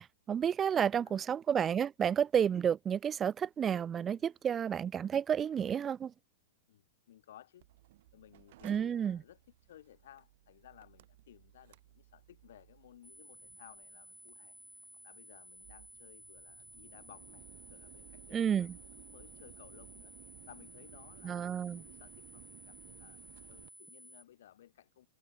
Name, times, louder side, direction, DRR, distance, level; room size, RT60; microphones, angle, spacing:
voice 1, 0.0-6.1 8.6-9.2 18.3-18.7 21.2-21.8, right 8 dB, 20° right, 0.4 m, -31 dB
voice 2, 0.8-1.3 6.7-7.7 8.1-20.1 20.5-23.2 23.5-25.1, left 12 dB, 70° left, 2.7 m, -59 dB
Mechanical fan, 7.6-23.7, right 16 dB, 60° right, 7.7 m, -59 dB
sound 1, 13.0-24.2, equal, ahead, 1.8 m, -55 dB
hypercardioid pair, 120°, 0 cm